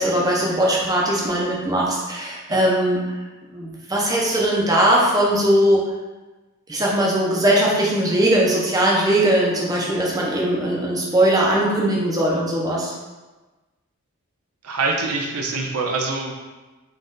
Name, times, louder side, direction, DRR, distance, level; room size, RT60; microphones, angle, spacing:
voice 1, 0.0-3.0 3.5-5.8 6.7-12.9, right 1 dB, 15° right, -4 dB, 0.6 m, -20 dB
voice 2, 14.6-16.3, right 3 dB, 75° right, 1 dB, 0.6 m, -24 dB
4.0 x 2.5 x 3.8 m, 1.2 s
head